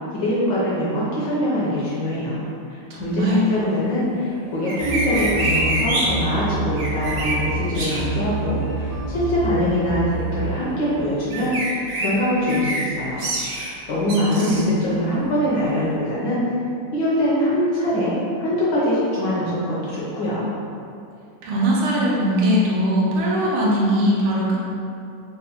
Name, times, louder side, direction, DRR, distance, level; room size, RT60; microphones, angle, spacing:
voice 1, 0.1-2.4 2.7-13.2 13.6-16.4 16.9-18.1 18.4-20.5, equal, 75° left, -7 dB, 1.0 m, -23 dB
voice 2, 2.9-3.5 14.1-14.7 21.4-24.6, equal, 90° right, -4 dB, 1.5 m, -20 dB
sound 1, 4.7-6.0 6.8-7.4 7.7-8.0 11.3-12.1 12.5-12.8 13.2-13.7 14.1-14.6, right 2 dB, 70° right, 1.3 m, -26 dB
sound 2, 4.8-10.5, right 2 dB, 50° right, 0.6 m, -28 dB
4.1 x 2.0 x 2.8 m, 2.5 s
omnidirectional pair, 2.4 m